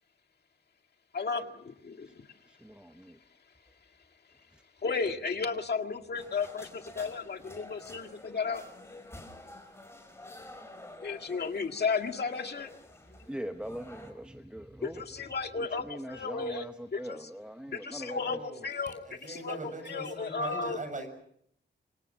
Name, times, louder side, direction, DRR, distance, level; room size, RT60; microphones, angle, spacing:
voice 1, 1.1-2.1 4.8-8.6 11.0-12.7 14.8-16.6 16.9-17.2 17.7-19.6 19.9-20.8, left 4 dB, 60° left, 5 dB, 2.0 m, -34 dB
voice 2, 2.5-3.2 4.5-4.6 13.3-15.3 15.6-18.4, equal, 5° right, 7 dB, 0.9 m, -42 dB
sound 1, 6.2-14.1, left 1 dB, 15° left, 4.8 m, -49 dB
voice 3, 18.2-18.7 19.0-21.1, right 2 dB, 40° right, 7 dB, 6.8 m, -40 dB
29.0 x 25.0 x 6.2 m, 0.69 s
wide cardioid pair, 135°, 19 cm